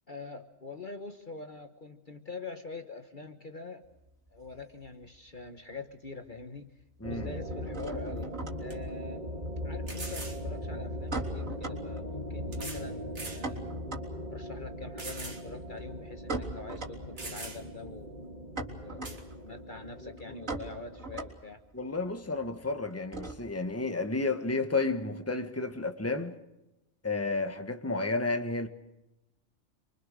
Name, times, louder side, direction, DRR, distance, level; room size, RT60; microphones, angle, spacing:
voice 1, 0.1-3.8 4.3-6.7 7.0-8.3 8.6-9.2 9.6-13.6 14.3-18.3 18.8-21.6, left 3 dB, 40° left, 1.4 m, -44 dB
sound 1, 3.8-5.5 5.7-6.4 6.7-23.7, right 2 dB, 75° right, 4.1 m, -42 dB
sound 2, 7.0-21.4, equal, 35° right, 2.5 m, -40 dB
sound 3, 8.1-8.2 8.7-8.8 9.9-10.4 11.5-11.6 12.5-12.9 13.1-13.4 13.9-14.0 15.0-15.4 15.8-15.9 16.7-16.8 17.2-17.8 19.0-19.2, right 2 dB, 60° right, 3.5 m, -42 dB
voice 2, 21.7-26.3 27.0-28.7, left 3 dB, 10° left, 1.5 m, -31 dB
27.5 x 24.0 x 6.6 m
omnidirectional pair, 1.4 m